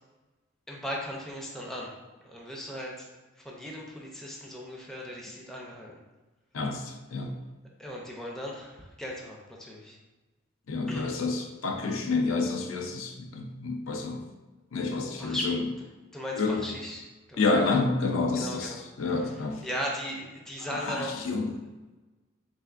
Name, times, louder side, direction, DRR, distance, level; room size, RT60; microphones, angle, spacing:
voice 1, 0.7-1.9 2.2-3.1 3.4-5.9 7.8-10.0 10.9-11.1 15.2-15.5 15.8-17.5 18.3-18.8 19.2-21.2, equal, ahead, -3 dB, 0.4 m, -37 dB
voice 2, 6.5-7.4 10.7-14.2 14.7-15.6 16.4-16.6 17.4-19.6 20.7-21.5, left 3 dB, 70° left, 3 dB, 0.4 m, -29 dB
3.4 x 3.4 x 2.4 m, 1.2 s
head